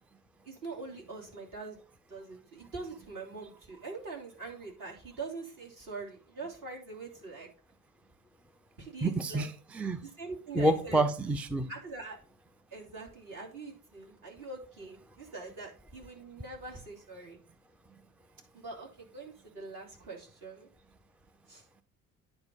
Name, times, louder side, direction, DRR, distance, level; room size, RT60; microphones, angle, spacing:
voice 1, 0.4-1.8 2.1-7.5 8.8-9.5 10.0-11.0 11.7-12.2 12.7-17.4 18.5-20.7 21.5-21.6, right 3 dB, 45° right, -1 dB, 3.1 m, -43 dB
voice 2, 9.0-10.0 10.5-11.7, right 2 dB, 5° right, 11 dB, 0.4 m, -28 dB
9.6 x 4.4 x 5.4 m, 0.37 s
figure-of-eight pair, 55°, 43 cm